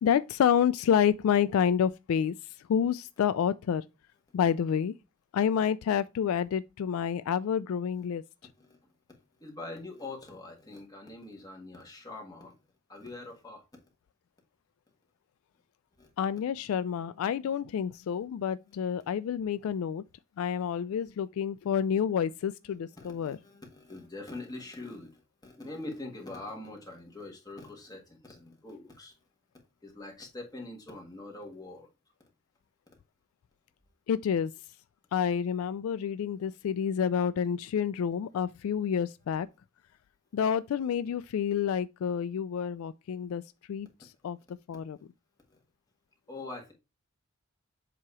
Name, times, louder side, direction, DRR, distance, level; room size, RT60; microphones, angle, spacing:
voice 1, 0.0-2.3 2.7-3.8 4.3-4.9 5.3-8.2 16.2-20.0 20.4-23.4 34.1-34.5 35.1-39.5 40.3-43.4 43.7-44.4 44.7-45.0, left 8 dB, 75° left, 0.3 m, -28 dB
voice 2, 9.4-12.5 12.9-13.6 16.0-16.1 23.0-29.1 29.8-31.9 45.5-45.6 46.3-46.7, left 2 dB, 20° left, 1.6 m, -43 dB
7.6 x 2.9 x 4.7 m
head